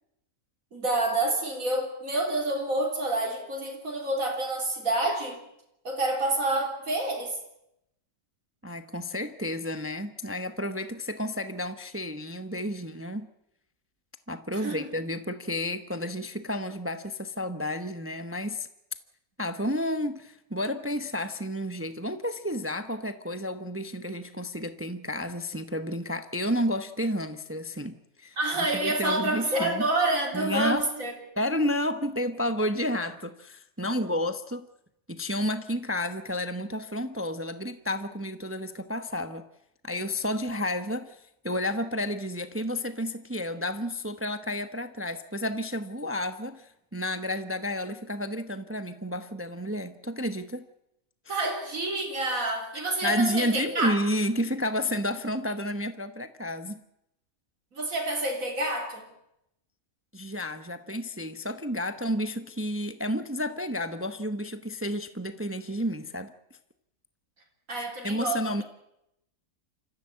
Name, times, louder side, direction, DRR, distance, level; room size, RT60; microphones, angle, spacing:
voice 1, 0.7-5.4 5.8-7.4 14.5-14.9 28.4-31.1 51.3-54.0 57.7-59.1 67.7-68.6, right 2 dB, 70° right, 4.2 m, -28 dB
voice 2, 8.6-13.3 14.3-18.7 19.4-29.8 30.3-30.9 31.4-34.7 35.1-39.4 39.8-50.7 53.0-56.8 60.1-66.3 67.8-68.6, left 1 dB, 10° right, 0.7 m, -31 dB
27.0 x 14.5 x 8.5 m
omnidirectional pair, 1.5 m